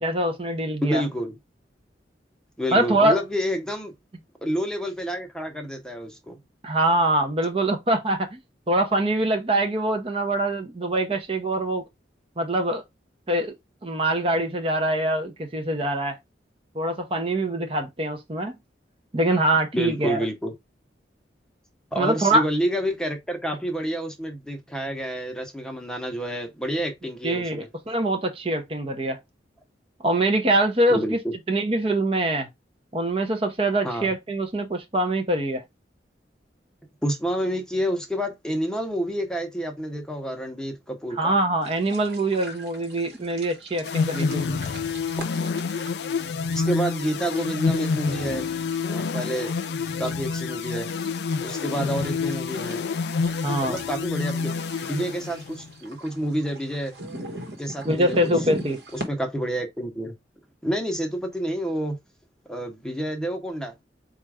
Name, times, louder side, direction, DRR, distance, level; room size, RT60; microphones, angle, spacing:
voice 1, 0.0-1.0 2.7-3.2 6.6-8.4 8.7-11.9 12.4-12.8 13.3-13.5 13.8-16.2 16.7-18.5 19.1-20.2 22.0-22.4 27.2-29.2 30.0-31.2 31.5-32.5 32.9-35.6 41.2-44.4 53.4-53.8 57.8-58.8, right 1 dB, 30° right, 0.6 m, -24 dB
voice 2, 0.8-1.4 2.6-3.9 4.4-6.4 19.7-20.5 21.9-27.7 30.9-31.3 33.8-34.1 37.0-41.4 44.3-44.4 46.5-48.5 48.9-49.5 50.0-50.9 51.4-52.8 53.6-54.5 54.8-57.0 57.6-58.2 58.9-60.1 60.6-62.0 62.5-63.7, equal, 5° left, 0.7 m, -29 dB
sound 1, 41.6-59.1, right 1 dB, 70° right, 1.1 m, -41 dB
sound 2, 43.8-55.7, left 5 dB, 65° left, 0.4 m, -28 dB
4.3 x 2.4 x 4.7 m
head